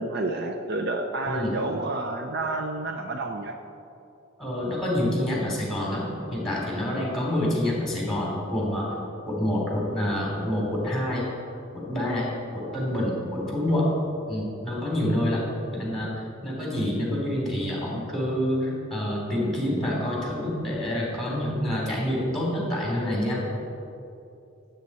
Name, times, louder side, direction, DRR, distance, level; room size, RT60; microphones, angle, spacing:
voice 1, 0.0-3.6 12.7-12.8, right 2 dB, 55° right, 4 dB, 0.6 m, -30 dB
voice 2, 4.4-8.9 9.3-11.2 11.7-12.3 12.5-13.9 14.3-15.4 15.7-16.1 16.4-23.4, left 1 dB, ahead, -4 dB, 3.1 m, -27 dB
16.0 x 8.1 x 4.3 m, 2.7 s
head